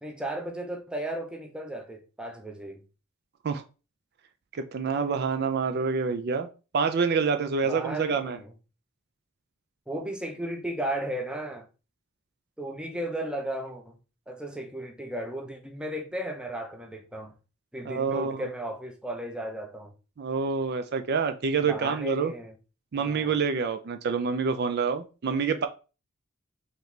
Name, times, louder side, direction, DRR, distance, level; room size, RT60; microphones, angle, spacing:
voice 1, 0.0-2.8 7.6-8.5 9.9-11.7 12.6-14.0 14.3-17.3 17.7-19.9 21.7-22.5 22.9-23.4, right 1 dB, 5° right, 0.6 m, -35 dB
voice 2, 4.5-6.5 6.7-8.4 17.9-18.5 20.2-22.3 22.9-25.7, right 5 dB, 50° right, 0.4 m, -27 dB
4.0 x 3.0 x 3.2 m
head